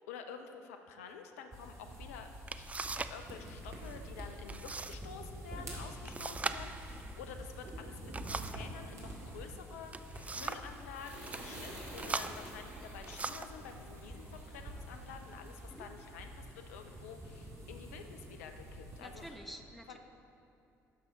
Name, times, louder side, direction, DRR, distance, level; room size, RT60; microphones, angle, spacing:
voice 1, 0.0-2.7 3.1-19.3 19.9-20.0, left 6 dB, 70° left, 6 dB, 0.6 m, -49 dB
sound 1, 1.5-19.3, right 1 dB, 35° right, 2.0 m, -48 dB
sound 2, 2.0-2.1 2.5-3.2 3.5-4.0 4.5-5.0 5.3-5.4 6.1-8.7 9.7-10.7 11.2-11.4 12.0-13.6 14.4-14.5 15.1-15.6, right 3 dB, 15° right, 0.3 m, -41 dB
sound 3, 10.0-16.6, right 1 dB, 75° right, 1.6 m, -51 dB
voice 2, 19.0-20.0, equal, ahead, 4 dB, 0.7 m, -49 dB
11.0 x 6.2 x 3.8 m, 2.8 s
figure-of-eight pair, 50°, 8 cm